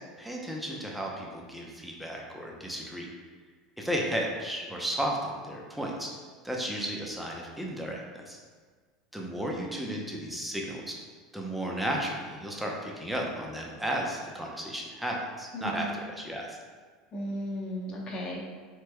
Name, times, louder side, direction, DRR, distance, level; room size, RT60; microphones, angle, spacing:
voice 1, 0.2-3.1 3.8-6.1 6.4-8.4 9.1-10.9 11.3-16.6, equal, 5° right, -1 dB, 0.7 m, -34 dB
voice 2, 15.5-16.0 17.1-18.4, equal, 40° left, -2 dB, 0.9 m, -35 dB
4.3 x 3.1 x 2.2 m, 1.5 s
hypercardioid pair, 85°, 2 cm